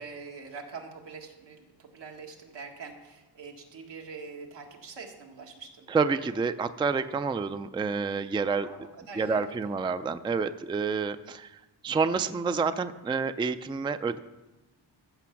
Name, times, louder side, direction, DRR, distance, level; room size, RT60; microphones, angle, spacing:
voice 1, 0.0-5.9 8.6-9.6, right 4 dB, 85° right, 1 dB, 1.8 m, -44 dB
voice 2, 5.9-8.7 9.2-11.5 11.8-14.2, right 5 dB, 10° right, 11 dB, 0.3 m, -28 dB
14.5 x 6.0 x 5.8 m, 1.1 s
wide cardioid pair, 110°, 42 cm